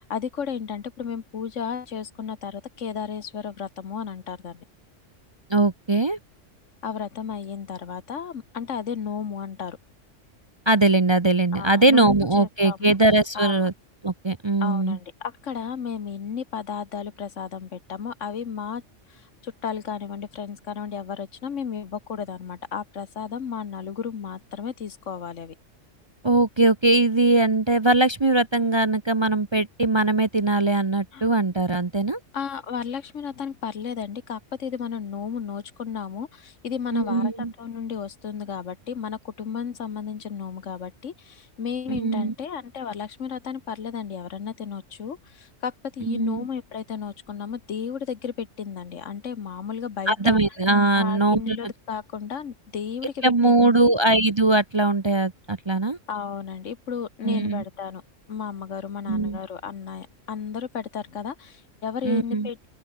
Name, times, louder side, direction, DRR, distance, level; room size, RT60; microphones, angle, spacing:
voice 1, 0.0-4.6 6.8-9.8 11.5-12.9 13.3-13.7 14.6-18.8 19.1-25.5 31.1-31.2 32.3-37.3 37.6-50.4 50.9-53.9 56.1-58.0 58.3-62.7, left 7 dB, 75° left, 1.6 m, -33 dB
voice 2, 5.5-6.2 10.7-13.7 14.0-15.0 26.2-32.2 36.9-37.5 41.9-42.3 46.0-46.5 50.1-51.6 53.2-56.0 57.2-57.6 59.1-59.4 62.0-62.5, right 2 dB, 25° right, 0.7 m, -21 dB
open air
omnidirectional pair, 1.3 m